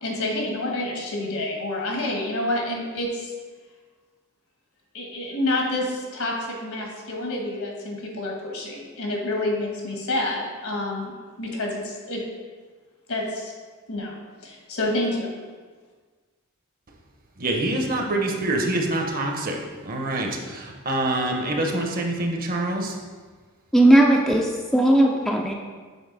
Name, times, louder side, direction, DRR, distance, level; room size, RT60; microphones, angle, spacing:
voice 1, 0.0-3.3 4.9-11.1 11.4-12.2 13.1-13.5 13.9-14.1 14.4-15.3, left 1 dB, 80° left, 0 dB, 1.3 m, -28 dB
voice 2, 17.4-19.6 19.8-23.0, right 1 dB, 45° right, 2 dB, 0.8 m, -25 dB
voice 3, 23.7-25.5, right 1 dB, ahead, 0 dB, 0.3 m, -17 dB
7.0 x 3.9 x 3.9 m, 1.5 s
head